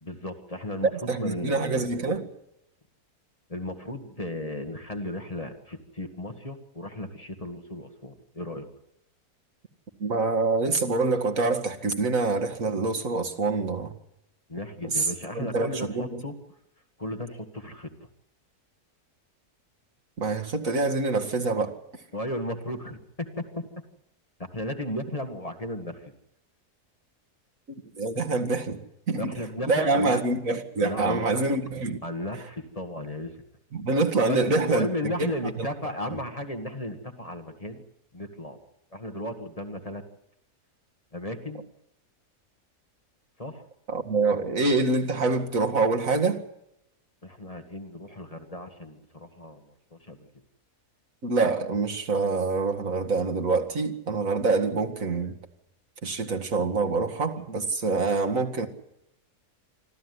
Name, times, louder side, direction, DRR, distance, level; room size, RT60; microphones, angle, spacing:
voice 1, 0.0-1.8 3.5-8.7 14.5-16.3 17.0-17.9 22.1-23.7 24.4-26.1 29.2-30.2 30.8-31.3 32.0-33.3 34.3-37.8 38.1-38.6 38.9-40.0 41.1-41.6 43.4-43.6 47.2-49.6 49.9-50.3, left 1 dB, 25° left, 2.0 m, -34 dB
voice 2, 1.1-2.3 10.0-13.9 14.9-15.1 15.3-16.2 20.2-21.8 27.9-28.8 29.1-29.3 29.7-32.0 33.7-34.9 35.2-35.7 43.9-46.4 51.2-55.3 56.0-58.7, right 3 dB, 60° right, 2.4 m, -26 dB
25.5 x 14.5 x 9.6 m
omnidirectional pair, 1.6 m